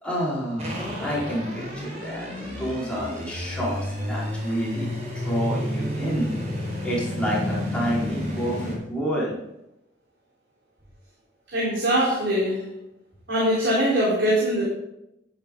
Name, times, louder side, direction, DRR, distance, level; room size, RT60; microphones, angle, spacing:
voice 1, 0.0-6.3 6.8-9.4 12.0-12.2, equal, 5° left, -8 dB, 4.7 m, -29 dB
sound 1, 0.6-8.8, left 1 dB, 40° right, 4.7 m, -31 dB
voice 2, 11.5-12.7 13.3-14.6, equal, 75° right, -7 dB, 4.4 m, -22 dB
12.0 x 11.0 x 3.9 m, 0.85 s
head